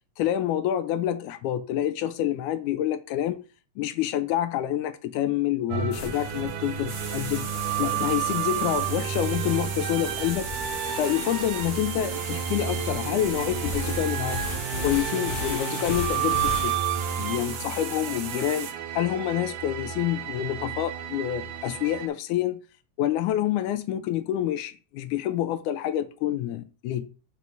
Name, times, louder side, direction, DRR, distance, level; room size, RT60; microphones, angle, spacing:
voice 1, 0.2-3.4 3.8-7.5 7.8-10.5 11.0-14.4 14.8-16.8 17.2-22.6 23.0-27.1, left 12 dB, 85° left, 2.2 m, -27 dB
sound 1, 5.7-22.1, right 9 dB, 85° right, 2.3 m, -31 dB
sound 2, 5.9-16.7, left 6 dB, 65° left, 1.3 m, -38 dB
sound 3, 6.9-18.7, right 6 dB, 55° right, 1.4 m, -38 dB
5.5 x 4.5 x 5.8 m
omnidirectional pair, 3.5 m